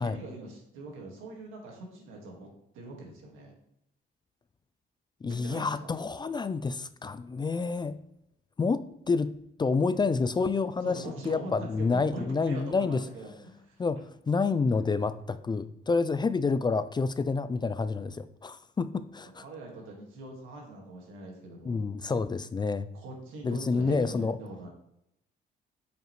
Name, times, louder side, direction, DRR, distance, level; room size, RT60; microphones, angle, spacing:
voice 1, 0.0-2.5 2.7-3.5 5.2-5.9 10.8-13.8 19.4-21.8 23.0-24.7, right 2 dB, 90° right, 0 dB, 1.8 m, -42 dB
voice 2, 5.2-8.0 8.6-13.0 13.8-14.0 14.3-19.4 21.6-22.9 23.4-24.4, left 4 dB, 20° left, 13 dB, 0.3 m, -28 dB
7.4 x 5.2 x 3.1 m, 0.80 s
cardioid pair, 90°, 20 cm